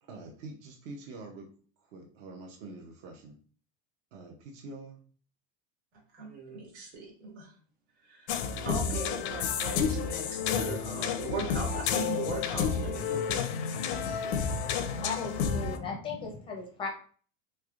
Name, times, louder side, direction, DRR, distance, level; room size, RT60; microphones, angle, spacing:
voice 1, 0.0-1.5 1.8-3.4 4.1-5.0, right 3 dB, 50° right, 1 dB, 0.6 m, -45 dB
voice 2, 6.1-7.5 8.0-13.5 14.0-14.5, right 4 dB, 90° right, -1 dB, 1.7 m, -39 dB
sound 1, 8.3-15.8, left 7 dB, 90° left, 0.6 m, -31 dB
voice 3, 15.0-16.9, left 4 dB, 15° left, 0 dB, 0.5 m, -36 dB
3.4 x 3.2 x 2.4 m, 0.43 s
cardioid pair, 170°, 32 cm